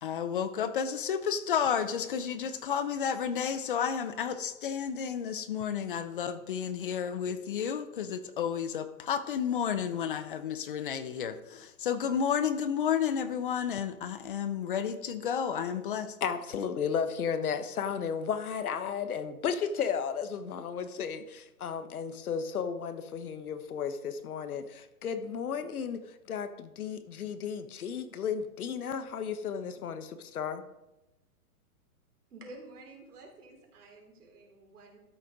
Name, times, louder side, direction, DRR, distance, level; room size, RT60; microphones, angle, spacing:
voice 1, 0.0-16.1, left 8 dB, 35° left, 12 dB, 0.7 m, -31 dB
voice 2, 16.2-30.6, left 7 dB, 75° left, 10 dB, 1.3 m, -34 dB
voice 3, 32.3-35.0, right 2 dB, 85° right, 1 dB, 3.8 m, -50 dB
12.5 x 6.7 x 5.1 m, 0.97 s
hypercardioid pair, 170°, 44 cm